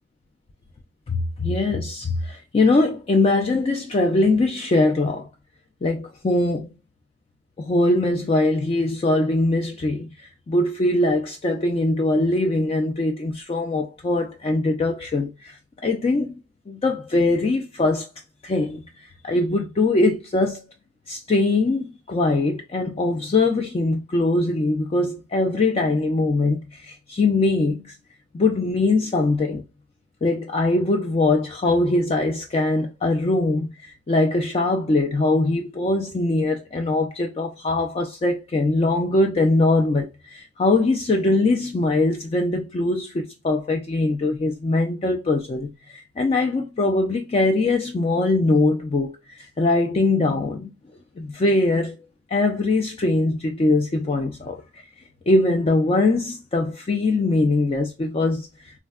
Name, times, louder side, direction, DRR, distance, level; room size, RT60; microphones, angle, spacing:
voice 1, 1.1-5.3 5.8-6.7 7.6-10.1 10.5-15.6 15.8-16.3 16.7-18.1 18.4-18.8 19.2-20.6 21.1-27.9 28.3-29.6 30.2-33.7 34.1-45.7 46.2-49.1 49.6-50.7 51.2-52.0 52.3-54.6 55.3-58.5, left 2 dB, 30° left, 0.3 m, -22 dB
3.3 x 2.1 x 2.2 m
head